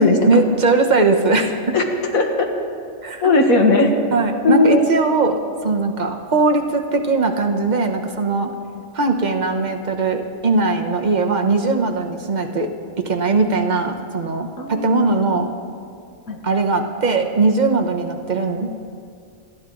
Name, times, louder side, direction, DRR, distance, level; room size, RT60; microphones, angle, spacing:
voice 1, 0.2-1.8 3.0-3.3 4.1-8.5 8.9-12.7 13.0-15.5 16.4-18.9, right 3 dB, 35° right, 3 dB, 1.1 m, -20 dB
voice 2, 1.7-2.5 3.2-3.9 4.4-4.8 14.6-15.0 16.3-16.4, left 3 dB, 85° left, 3 dB, 1.9 m, -17 dB
27.5 x 10.5 x 3.9 m, 2.3 s
omnidirectional pair, 1.4 m